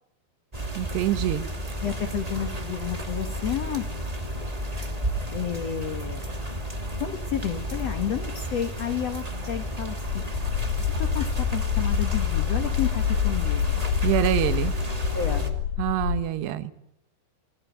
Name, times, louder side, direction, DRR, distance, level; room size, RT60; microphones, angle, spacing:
sound 1, 0.5-15.5, equal, 15° right, 1.8 m, -32 dB
voice 1, 0.8-1.5 14.0-14.8 15.8-16.7, right 12 dB, 80° right, 11 dB, 3.3 m, -25 dB
voice 2, 1.8-3.9 5.3-6.2 7.0-10.3 10.8-13.8 14.4-14.5 15.1-15.6, left 9 dB, 55° left, 6 dB, 1.9 m, -31 dB
sound 2, 10.1-16.2, left 9 dB, 75° left, 3.2 m, -26 dB
26.5 x 21.5 x 9.4 m, 0.78 s
omnidirectional pair, 4.8 m